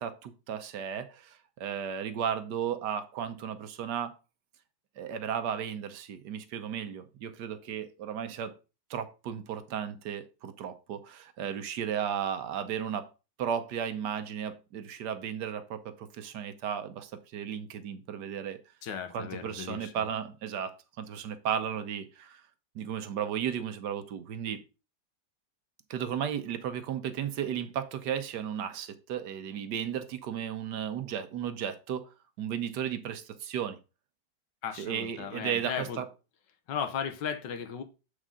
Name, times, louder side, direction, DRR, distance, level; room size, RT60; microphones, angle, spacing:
voice 1, 0.0-4.2 5.0-8.5 8.9-13.1 13.4-18.6 19.1-22.4 22.7-24.6 25.9-33.8 34.8-36.1, right 8 dB, 70° right, 1.2 m, -34 dB
voice 2, 18.8-20.0 34.6-36.0 36.7-37.8, left 7 dB, 75° left, 1.5 m, -36 dB
7.4 x 4.9 x 3.7 m
omnidirectional pair, 2.0 m